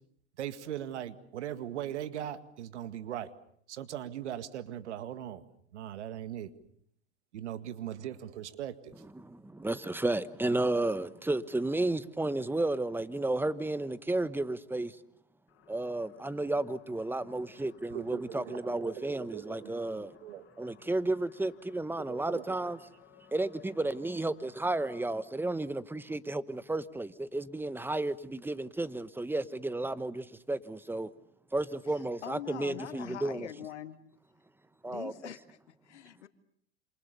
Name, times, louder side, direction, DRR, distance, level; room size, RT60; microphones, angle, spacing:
voice 1, 0.4-3.3 3.7-5.4 5.7-6.5 7.3-8.9 17.4-17.5 17.9-19.8 20.2-20.5 22.1-22.6, right 11 dB, 80° right, 2.1 m, -39 dB
voice 2, 9.1-15.0 15.7-20.1 20.6-22.8 23.3-31.1 31.5-33.5 34.8-35.1, right 2 dB, 5° right, 1.2 m, -32 dB
sound 1, 15.5-25.2, left 8 dB, 40° left, 6.4 m, -60 dB
voice 3, 31.8-34.0 34.9-36.3, left 11 dB, 85° left, 2.0 m, -44 dB
27.5 x 27.5 x 7.0 m
hypercardioid pair, 100°, 34 cm